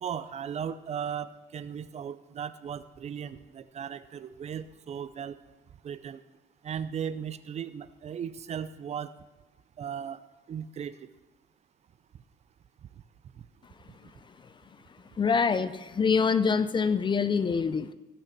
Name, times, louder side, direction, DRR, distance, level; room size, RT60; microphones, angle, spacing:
voice 1, 0.0-5.4 5.8-6.2 6.6-9.1 9.8-10.2 10.5-11.0, right 8 dB, 40° right, 14 dB, 0.5 m, -36 dB
voice 2, 15.2-17.9, left 5 dB, 30° left, 13 dB, 0.5 m, -25 dB
16.0 x 6.0 x 5.9 m, 1.2 s
cardioid pair, 110°, 17 cm